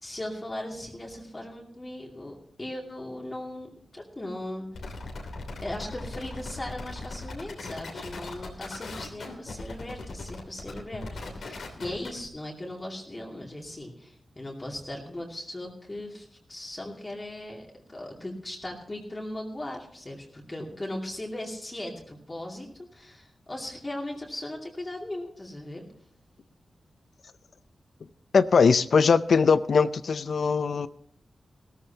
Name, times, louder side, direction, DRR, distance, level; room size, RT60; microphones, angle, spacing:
voice 1, 0.0-4.8 5.6-25.8, left 1 dB, 20° left, 2.5 m, -38 dB
sound 1, 4.7-12.3, left 3 dB, 80° left, 3.0 m, -39 dB
voice 2, 28.3-30.9, left 5 dB, 65° left, 0.5 m, -21 dB
17.0 x 14.0 x 2.9 m
wide cardioid pair, 115°, 0 cm